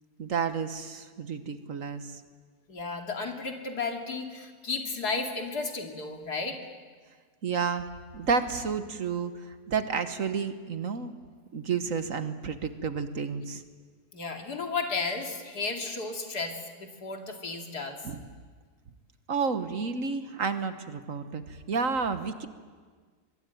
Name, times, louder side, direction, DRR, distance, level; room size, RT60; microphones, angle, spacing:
voice 1, 0.2-2.2 7.4-7.9 8.1-11.1 11.5-13.6 18.0-18.2 19.3-22.5, right 5 dB, 55° right, 10 dB, 1.6 m, -31 dB
voice 2, 2.7-6.6 14.1-18.0, left 4 dB, 75° left, 3 dB, 3.1 m, -33 dB
23.5 x 23.0 x 9.3 m, 1.5 s
omnidirectional pair, 1.7 m